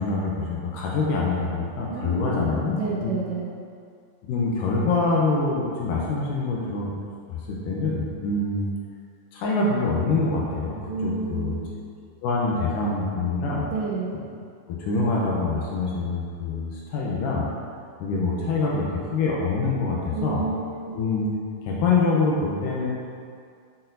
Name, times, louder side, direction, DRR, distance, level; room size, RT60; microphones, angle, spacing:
voice 1, 0.0-3.1 4.3-6.9 7.3-8.6 9.3-11.6 12.2-13.7 14.7-17.5 18.0-18.9 19.1-20.4 21.0-21.3 21.6-22.9, left 3 dB, 85° left, -4 dB, 1.8 m, -25 dB
voice 2, 1.9-3.5 10.9-11.6 13.7-14.2 20.1-21.0, right 3 dB, 90° right, -4 dB, 3.0 m, -30 dB
9.9 x 4.2 x 2.6 m, 2.3 s
omnidirectional pair, 4.7 m